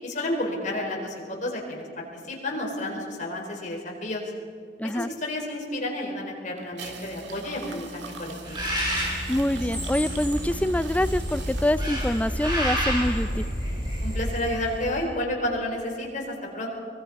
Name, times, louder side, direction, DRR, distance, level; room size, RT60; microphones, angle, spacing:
voice 1, 0.0-1.8 2.2-4.2 4.9-8.6 14.0-16.7, left 1 dB, 45° left, 0 dB, 4.6 m, -31 dB
voice 2, 4.8-5.1 9.3-13.5, left 1 dB, 10° left, 14 dB, 0.4 m, -25 dB
sound 1, 6.6-12.9, right 3 dB, 70° right, 2.0 m, -41 dB
Bird, 8.4-14.9, equal, 25° right, 6.5 m, -29 dB
24.0 x 20.5 x 5.5 m, 2.2 s
head